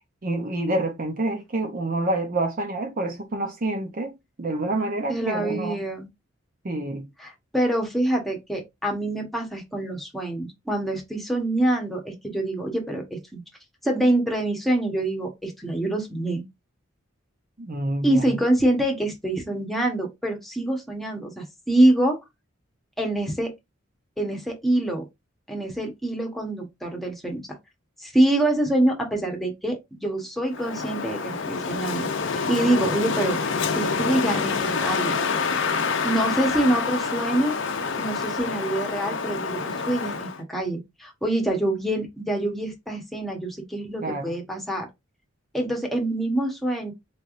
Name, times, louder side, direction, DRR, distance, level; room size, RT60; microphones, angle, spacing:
voice 1, 0.2-5.8 6.6-7.1 17.6-18.4 44.0-44.4, right 2 dB, 45° right, 0.6 m, -28 dB
voice 2, 5.1-6.1 7.2-13.4 13.8-16.4 18.0-22.2 23.0-23.5 24.2-25.0 25.5-27.6 28.0-33.4 33.7-35.2 36.0-37.6 38.0-44.9 45.5-46.9, right 1 dB, ahead, 1.1 m, -25 dB
Wind, 30.5-40.4, left 5 dB, 65° left, 0.6 m, -27 dB
4.0 x 3.4 x 2.5 m
head